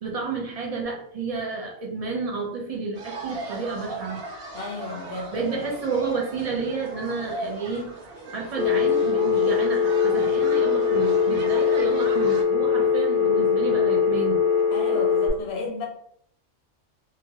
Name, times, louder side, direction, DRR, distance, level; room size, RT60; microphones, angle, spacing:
voice 1, 0.0-4.3 5.3-7.9 8.3-14.4, right 4 dB, 75° right, 0.3 m, -30 dB
sound 1, 3.0-12.4, right 2 dB, 55° right, 0.8 m, -38 dB
voice 2, 4.5-5.4 14.7-15.9, left 3 dB, 65° left, 0.8 m, -33 dB
Telephone, 8.6-15.3, left 6 dB, 5° right, 0.5 m, -21 dB
2.9 x 2.3 x 2.7 m
omnidirectional pair, 1.3 m